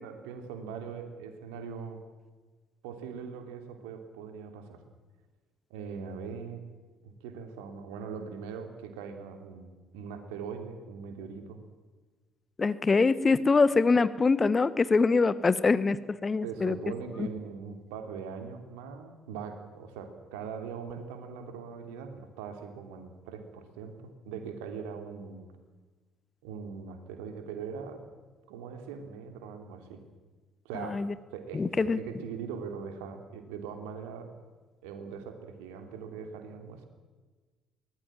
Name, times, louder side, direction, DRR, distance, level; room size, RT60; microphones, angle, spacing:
voice 1, 0.0-2.0 2.8-4.8 5.7-6.6 7.0-11.6 16.4-24.0 24.2-25.5 26.4-28.0 28.5-30.0 30.6-31.0 31.3-34.4 34.8-36.9, right 6 dB, 70° right, 6 dB, 3.1 m, -41 dB
voice 2, 12.6-16.8 17.2-17.3 30.7-31.1 31.5-32.0, left 4 dB, 30° left, 16 dB, 1.2 m, -24 dB
23.5 x 19.5 x 7.5 m, 1.3 s
figure-of-eight pair, 50°, 0 cm